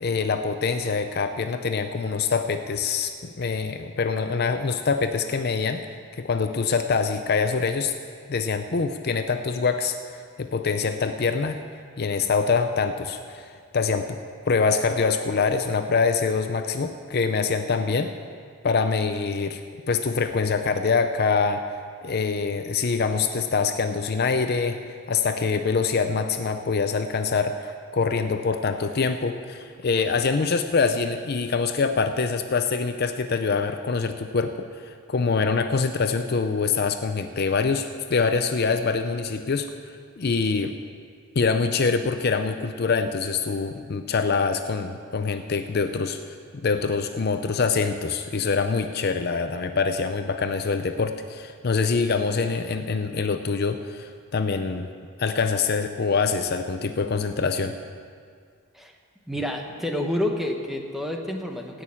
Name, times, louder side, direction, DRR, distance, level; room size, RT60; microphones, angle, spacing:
voice 1, 0.0-3.1 3.4-5.8 6.2-7.9 8.3-11.6 12.0-14.2 14.5-18.1 18.6-19.6 19.9-21.6 22.0-24.8 25.1-40.7 41.4-46.4 46.6-54.9 55.2-57.7, left 4 dB, 45° left, 8 dB, 0.5 m, -25 dB
voice 2, 59.3-61.8, left 1 dB, ahead, 2 dB, 1.0 m, -29 dB
16.5 x 6.4 x 8.4 m, 2.1 s
head